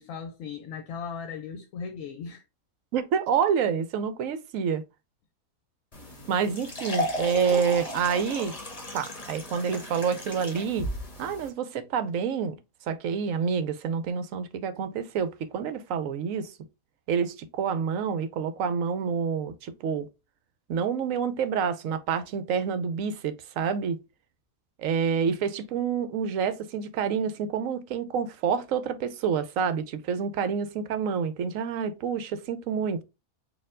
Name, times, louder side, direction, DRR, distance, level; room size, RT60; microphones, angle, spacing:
voice 1, 0.0-2.4, left 6 dB, 70° left, 1.0 m, -37 dB
voice 2, 2.9-4.8 6.3-8.5 8.9-10.9 11.2-12.6 12.9-16.5 17.1-20.1 20.7-24.0 24.8-33.0, right 6 dB, 70° right, 1.0 m, -28 dB
sound 1, 5.9-11.5, left 1 dB, 30° left, 1.0 m, -35 dB
4.4 x 2.6 x 3.6 m
omnidirectional pair, 1.5 m